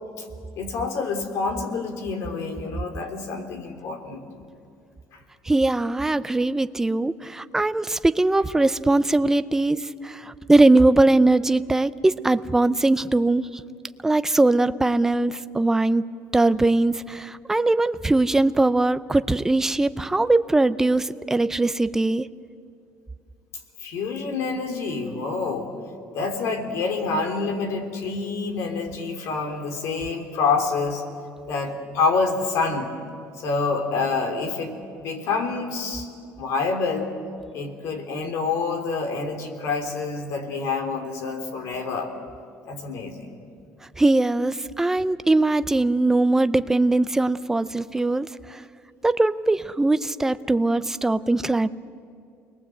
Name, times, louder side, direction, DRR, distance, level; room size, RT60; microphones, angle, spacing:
voice 1, 0.6-4.2 23.8-25.7 26.1-31.0 31.5-32.9 33.4-34.7 35.0-36.1 36.4-37.1 37.5-42.1 42.7-43.3, left 4 dB, 60° left, 4 dB, 3.5 m, -27 dB
voice 2, 5.5-13.5 14.0-16.0 16.3-22.3 44.0-48.6 49.0-51.7, right 2 dB, 10° right, 13 dB, 0.5 m, -21 dB
29.0 x 21.0 x 8.0 m, 2.5 s
cardioid pair, 165°, 6 cm